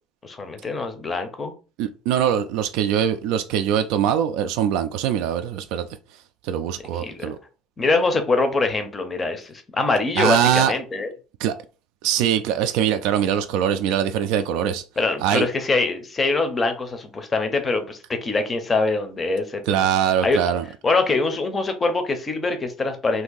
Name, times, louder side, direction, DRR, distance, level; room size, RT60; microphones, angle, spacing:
voice 1, 0.2-1.5 6.9-7.3 7.8-11.1 15.0-19.8 20.2-20.4 20.8-23.2, left 3 dB, 15° left, 0.5 m, -23 dB
voice 2, 1.8-5.9 6.4-7.4 10.2-10.7 11.4-11.5 12.0-14.8 15.2-15.5 19.7-20.6, right 9 dB, 70° right, 0.3 m, -22 dB
2.6 x 2.6 x 3.8 m
cardioid pair, 170°, 0 cm